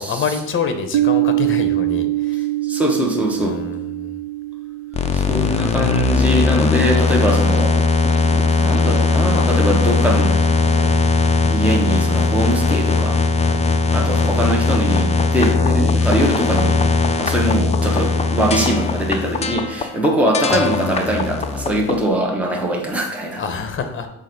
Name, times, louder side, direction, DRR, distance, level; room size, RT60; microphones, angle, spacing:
voice 1, 0.0-2.5 3.4-4.2 9.3-9.5 10.7-11.0 13.4-13.7 23.3-24.1, left 5 dB, 35° left, 7 dB, 0.9 m, -27 dB
Piano, 0.9-6.3, right 17 dB, 70° right, 0.6 m, -23 dB
voice 2, 2.6-3.6 5.1-7.8 8.2-10.4 11.5-13.2 13.6-16.8 17.2-23.4, right 1 dB, 5° right, 0 dB, 0.9 m, -22 dB
sound 1, 4.9-22.1, left 4 dB, 20° left, 0.4 m, -18 dB
7.2 x 2.6 x 5.2 m, 0.84 s
cardioid pair, 110°, 35 cm